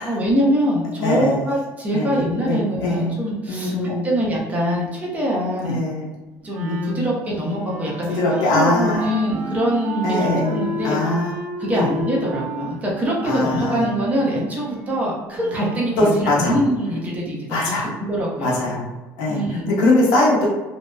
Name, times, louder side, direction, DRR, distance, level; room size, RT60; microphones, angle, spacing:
voice 1, 0.1-5.8 6.4-11.0 11.6-18.7 19.3-19.7, equal, 25° right, -3 dB, 0.6 m, -24 dB
voice 2, 1.0-1.4 1.9-3.1 3.5-4.1 5.6-6.1 6.7-7.1 8.1-9.1 10.0-11.3 11.7-11.9 13.2-13.8 16.0-16.5 17.5-17.9 18.4-18.8 19.2-20.5, left 2 dB, 85° left, -3 dB, 0.7 m, -21 dB
Wind instrument woodwind instrument, 6.5-16.0, equal, 75° right, 0.9 m, -33 dB
2.7 x 2.0 x 2.2 m, 1.2 s
cardioid pair, 130°, 6 cm